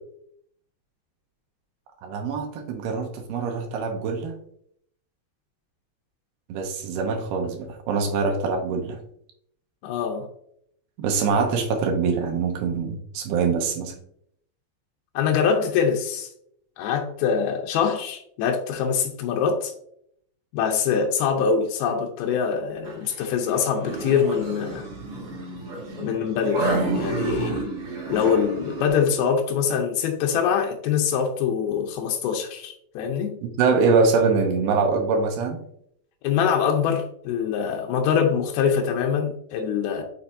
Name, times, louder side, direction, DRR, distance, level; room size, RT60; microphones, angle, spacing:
voice 1, 2.0-4.3 6.5-9.0 11.0-13.9 33.6-35.6, right 4 dB, 75° right, 3 dB, 2.4 m, -24 dB
voice 2, 9.8-10.3 15.2-16.3 16.8-19.7 20.5-24.9 26.0-27.6 28.1-33.4 36.2-40.0, left 7 dB, 85° left, 2 dB, 2.2 m, -24 dB
sound 1, 22.8-28.9, right 2 dB, 45° right, 2.0 m, -30 dB
7.0 x 5.9 x 2.6 m, 0.69 s
omnidirectional pair, 5.3 m